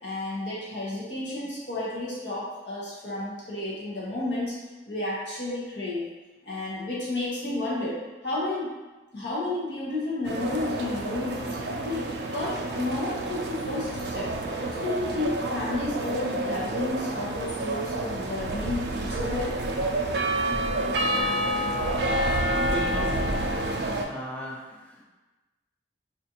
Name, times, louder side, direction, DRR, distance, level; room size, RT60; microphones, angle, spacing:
voice 1, 0.0-4.5 4.9-6.1 6.4-8.7 9.1-14.3 14.7-19.6, left 2 dB, 70° left, -7 dB, 1.0 m, -32 dB
sound 1, 10.2-24.0, right 1 dB, 60° right, 0.4 m, -29 dB
voice 2, 22.7-23.1 24.1-25.0, right 1 dB, 10° left, -3 dB, 0.4 m, -36 dB
4.1 x 2.4 x 2.8 m, 1.2 s
head